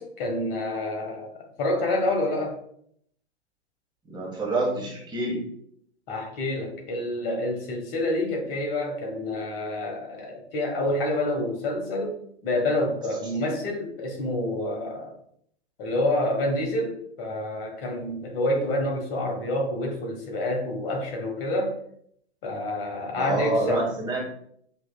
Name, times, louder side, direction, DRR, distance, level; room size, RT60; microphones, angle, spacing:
voice 1, 0.0-2.6 6.1-15.1 15.8-21.8 22.4-23.9, left 1 dB, 55° left, 1 dB, 1.3 m, -28 dB
voice 2, 4.1-5.5 23.2-24.3, right 2 dB, 15° right, -3 dB, 1.6 m, -27 dB
7.0 x 3.0 x 2.3 m, 0.68 s
hypercardioid pair, 105°, 34 cm